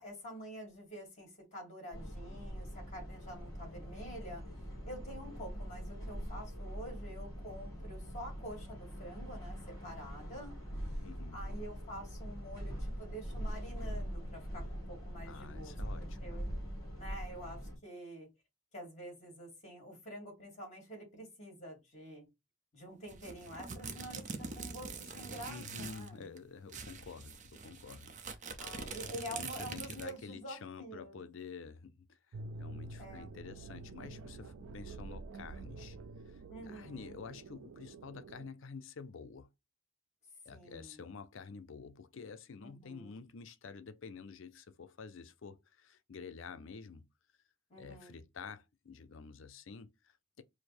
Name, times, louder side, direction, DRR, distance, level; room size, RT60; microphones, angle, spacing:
voice 1, 0.0-4.4 4.9-10.6 10.9-11.0 11.3-15.7 16.2-16.5 17.0-18.3 18.7-22.3 22.7-26.3 28.6-31.2 33.0-33.3 36.5-37.2 40.5-41.1 42.6-43.2 47.7-48.1, equal, 35° left, 2.6 m, -48 dB
sound 1, 1.9-17.8, equal, 20° left, 2.4 m, -43 dB
voice 2, 11.0-11.4 15.2-16.2 25.5-28.2 28.9-36.0 36.3-39.5 40.4-47.1 47.7-50.4, left 5 dB, 65° left, 0.5 m, -49 dB
sound 2, 23.1-26.1 26.4-26.5 26.7-30.2, right 4 dB, 35° right, 0.6 m, -44 dB
sound 3, 32.3-38.5, right 2 dB, 80° right, 0.4 m, -48 dB
4.9 x 2.1 x 4.2 m
head